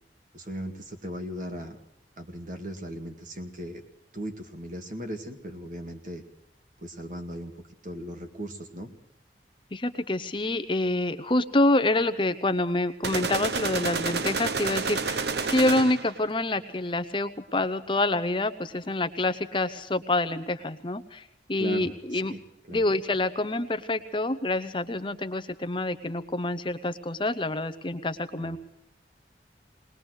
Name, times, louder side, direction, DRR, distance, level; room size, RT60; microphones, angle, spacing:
voice 1, 0.3-1.8 2.2-3.8 4.1-6.2 6.8-7.5 7.8-8.9 21.6-22.4 22.7-22.8 28.4-28.6, equal, 45° right, 5 dB, 2.1 m, -37 dB
voice 2, 9.7-22.3 22.7-28.6, left 2 dB, 30° left, 11 dB, 0.8 m, -27 dB
sound 1, 13.0-16.2, right 4 dB, 65° right, 0.9 m, -29 dB
20.5 x 20.0 x 6.4 m, 0.79 s
head